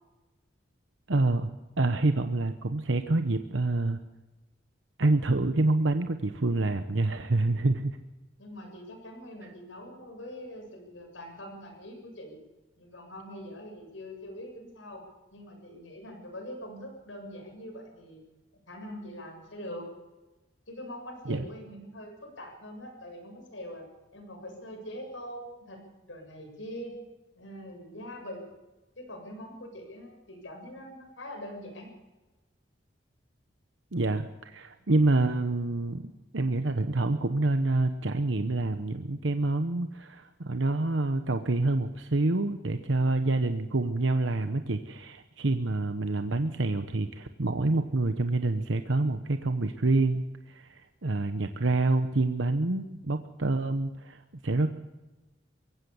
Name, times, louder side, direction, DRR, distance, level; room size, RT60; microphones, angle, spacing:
voice 1, 1.1-1.5 1.8-4.0 5.0-8.0 21.3-21.5 33.9-54.7, right 2 dB, 80° right, 8 dB, 1.0 m, -27 dB
voice 2, 8.4-12.4 12.8-15.0 15.3-18.2 18.5-19.9 20.7-23.9 24.1-27.0 27.4-28.5 29.0-31.9, equal, 85° left, 3 dB, 7.4 m, -43 dB
22.5 x 16.0 x 7.1 m, 1.1 s
head